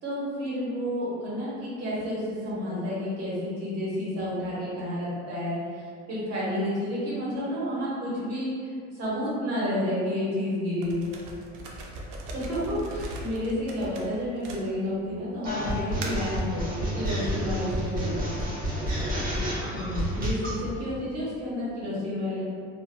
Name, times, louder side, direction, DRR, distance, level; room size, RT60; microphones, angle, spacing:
voice 1, 0.0-11.0 12.3-18.5 19.7-22.4, left 1 dB, 55° right, -8 dB, 1.2 m, -30 dB
sound 1, 10.8-15.1 15.7-16.4, right 1 dB, 75° right, 0.5 m, -39 dB
sound 2, 15.4-20.6, equal, 30° right, 0.7 m, -29 dB
2.9 x 2.4 x 2.2 m, 2.1 s
cardioid pair, 145°, 30 cm